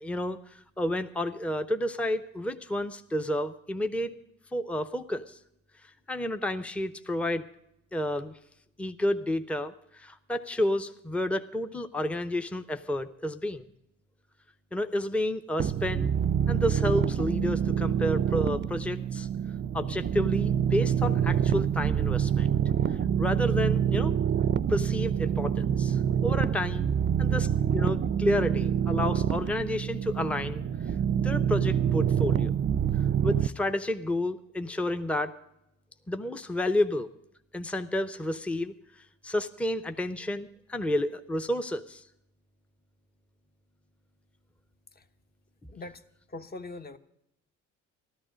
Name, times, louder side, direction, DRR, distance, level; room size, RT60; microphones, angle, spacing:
voice 1, 0.0-4.2 4.5-5.4 6.1-7.5 7.9-8.3 8.8-13.7 14.7-16.1 16.5-19.3 19.7-22.5 22.9-24.1 24.7-26.9 27.2-30.6 31.2-32.5 33.2-35.4 36.1-37.1 37.5-38.7 39.2-42.0, left 1 dB, 5° left, 9 dB, 0.6 m, -30 dB
sound 1, 15.6-33.5, right 9 dB, 40° right, 0.5 m, -26 dB
voice 2, 45.7-46.0 46.3-47.0, left 2 dB, 30° left, 9 dB, 0.9 m, -41 dB
13.5 x 13.0 x 5.1 m, 0.81 s
cardioid pair, 90°, 30 cm